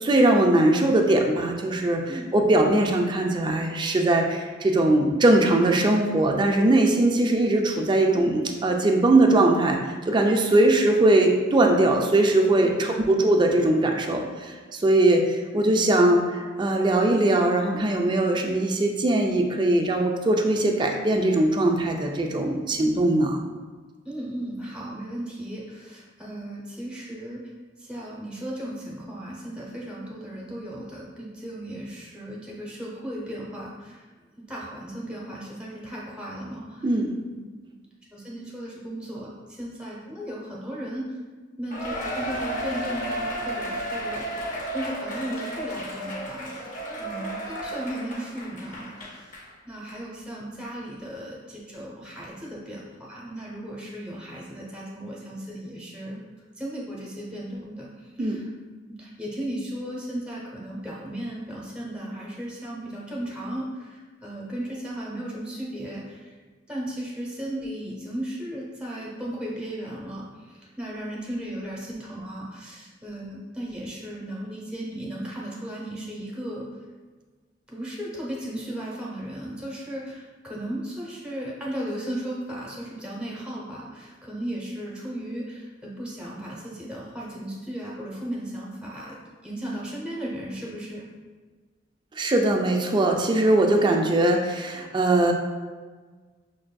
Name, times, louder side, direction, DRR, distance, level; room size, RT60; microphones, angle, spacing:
voice 1, 0.0-23.4 36.8-37.1 58.2-58.4 92.2-95.3, right 1 dB, 25° right, 2 dB, 0.3 m, -21 dB
voice 2, 12.6-13.3 24.0-27.4 27.8-34.0 34.4-36.9 38.1-41.2 41.6-49.3 49.6-56.2 56.6-58.5 58.9-66.3 66.7-76.6 77.7-89.2 89.4-91.1, right 1 dB, 5° right, -6 dB, 0.8 m, -36 dB
Cheering, 41.7-49.5 49.9-50.0 50.6-50.7, right 1 dB, 45° left, 0.5 m, -33 dB
5.8 x 2.5 x 2.2 m, 1.4 s
head